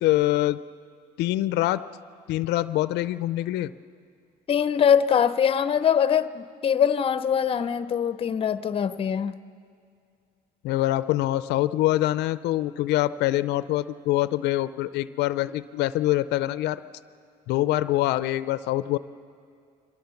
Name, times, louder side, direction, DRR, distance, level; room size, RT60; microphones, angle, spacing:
voice 1, 0.0-0.6 1.2-1.8 2.3-3.7 10.6-16.8 17.5-19.0, left 15 dB, 85° left, 15 dB, 0.5 m, -24 dB
voice 2, 4.5-9.3, left 8 dB, 35° left, 14 dB, 0.6 m, -23 dB
24.0 x 18.0 x 7.0 m, 2.3 s
cardioid pair, 110°, 17 cm